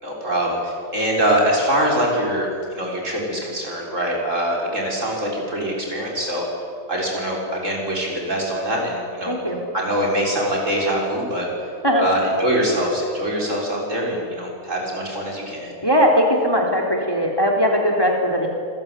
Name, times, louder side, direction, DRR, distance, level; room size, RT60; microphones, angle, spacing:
voice 1, 0.0-6.5 6.9-9.3 9.7-11.5 12.0-15.7, equal, 55° right, -2 dB, 7.1 m, -23 dB
voice 2, 9.3-9.6 11.8-12.0 15.8-18.5, equal, 15° left, 1 dB, 3.8 m, -19 dB
27.5 x 21.5 x 9.9 m, 2.3 s
omnidirectional pair, 1.6 m